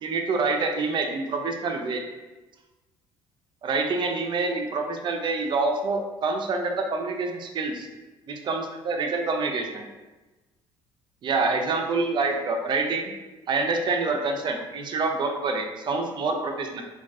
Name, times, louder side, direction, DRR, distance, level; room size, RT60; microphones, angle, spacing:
voice 1, 0.0-2.0 3.6-7.9 8.3-9.9 11.2-13.1 13.5-16.8, right 3 dB, 45° right, 3 dB, 0.4 m, -26 dB
2.3 x 2.3 x 2.5 m, 1.2 s
supercardioid pair, 90°, 11 cm